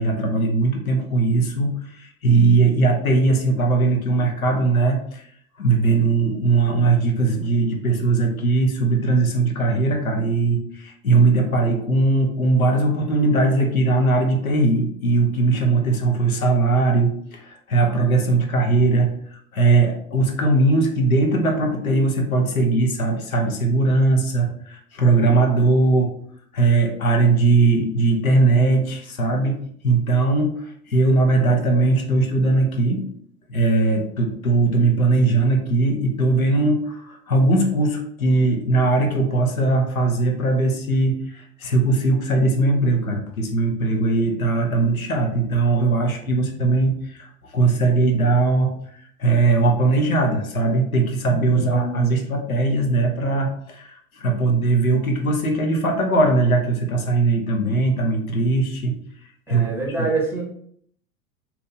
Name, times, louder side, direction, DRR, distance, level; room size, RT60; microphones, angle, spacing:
voice 1, 0.0-5.2 5.6-19.1 19.5-26.1 26.5-33.0 33.5-47.3 47.5-48.8 49.2-59.0 59.5-59.7 60.0-60.1, right 3 dB, 80° left, 2 dB, 0.8 m, -19 dB
voice 2, 51.5-52.1 59.5-60.4, right 2 dB, 5° right, -3 dB, 0.7 m, -26 dB
2.9 x 2.4 x 3.8 m, 0.66 s
figure-of-eight pair, 85°, 42 cm